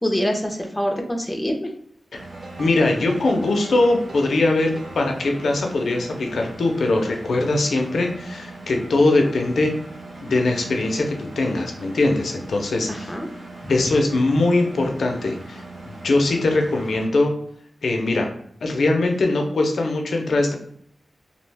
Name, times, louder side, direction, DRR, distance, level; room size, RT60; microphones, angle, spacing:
voice 1, 0.0-1.7 12.9-13.3 13.6-13.7, equal, 10° left, 2 dB, 0.5 m, -25 dB
Engine, 2.1-17.0, right 2 dB, 70° right, 0.7 m, -40 dB
sound 1, 2.3-6.1, right 2 dB, 50° right, 0.3 m, -42 dB
voice 2, 2.6-9.7 10.2-12.9 13.7-17.3 17.8-18.3 18.6-20.5, left 2 dB, 80° left, 2 dB, 0.4 m, -21 dB
2.4 x 2.1 x 3.2 m, 0.64 s
wide cardioid pair, 90°, 0 cm